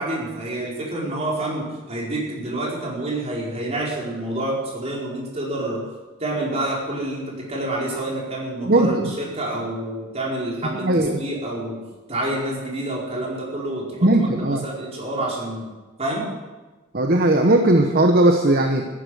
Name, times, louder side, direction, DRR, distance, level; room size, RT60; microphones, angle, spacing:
voice 1, 0.0-5.8 6.2-11.8 12.1-15.7 16.0-16.3, right 1 dB, 35° right, -3 dB, 4.7 m, -28 dB
voice 2, 8.7-9.1 10.8-11.2 14.0-14.6 16.9-18.8, right 1 dB, 50° right, 4 dB, 1.1 m, -17 dB
13.5 x 11.5 x 8.0 m, 1.2 s
head